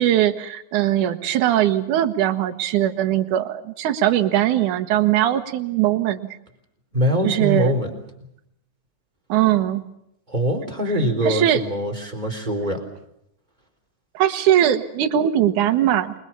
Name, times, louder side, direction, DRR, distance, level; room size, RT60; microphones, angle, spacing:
voice 1, 0.0-6.2 7.2-7.7 9.3-9.8 11.2-11.6 14.1-16.2, right 12 dB, 70° right, 6 dB, 2.7 m, -20 dB
voice 2, 6.9-7.9 10.3-12.8, equal, 15° right, 6 dB, 3.5 m, -23 dB
28.0 x 23.0 x 7.1 m, 0.77 s
omnidirectional pair, 3.8 m